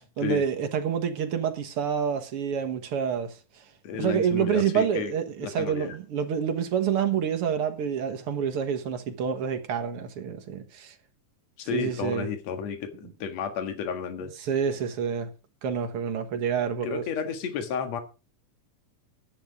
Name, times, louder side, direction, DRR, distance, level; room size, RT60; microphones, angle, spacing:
voice 1, 0.2-3.6 4.0-11.0 11.7-12.3 14.4-15.3 15.6-17.0, right 7 dB, 55° right, 2.1 m, -28 dB
voice 2, 3.8-5.1 5.4-5.9 11.6-14.3 16.8-18.0, left 7 dB, 60° left, 2.9 m, -32 dB
12.5 x 10.5 x 5.0 m
omnidirectional pair, 3.5 m